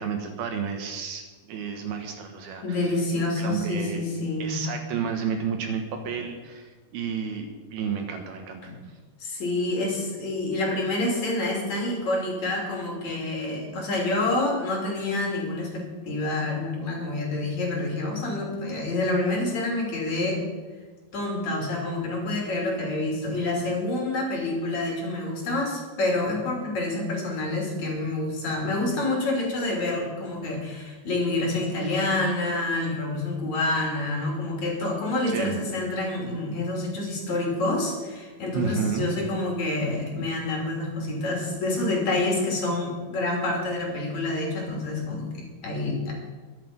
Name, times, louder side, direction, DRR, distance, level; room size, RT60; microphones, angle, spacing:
voice 1, 0.0-2.9 3.4-4.0 4.4-8.6 35.3-35.6 38.5-39.1, right 6 dB, 70° right, 5 dB, 2.9 m, -31 dB
voice 2, 2.6-4.6 8.6-8.8 9.2-20.5 21.1-46.1, left 2 dB, 45° left, -1 dB, 3.8 m, -27 dB
22.0 x 8.3 x 5.3 m, 1.4 s
omnidirectional pair, 5.1 m